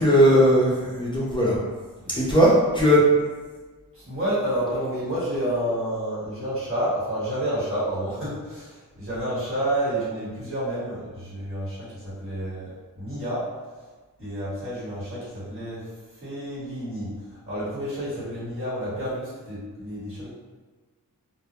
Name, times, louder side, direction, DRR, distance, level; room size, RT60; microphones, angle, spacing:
voice 1, 0.0-1.6 2.2-3.0, equal, 15° left, -7 dB, 0.5 m, -18 dB
voice 2, 2.0-2.5 3.9-13.5 14.2-20.3, right 1 dB, 40° right, -11 dB, 1.2 m, -30 dB
2.1 x 2.1 x 2.7 m, 1.3 s
wide cardioid pair, 120°, 35 cm